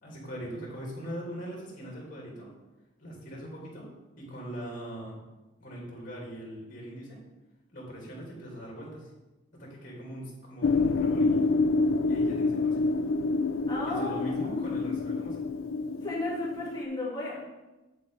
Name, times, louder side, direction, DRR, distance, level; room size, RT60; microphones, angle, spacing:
voice 1, 0.0-2.5 3.0-3.9 4.2-5.2 5.6-7.2 7.7-9.1 9.5-11.5 12.1-12.9 13.8-15.4, right 1 dB, 45° left, -3 dB, 2.8 m, -41 dB
sound 1, 10.6-16.8, left 3 dB, 85° left, 0.4 m, -27 dB
voice 2, 13.7-14.7 16.0-17.4, left 2 dB, 20° left, -6 dB, 2.4 m, -34 dB
8.0 x 7.7 x 3.5 m, 1.1 s
head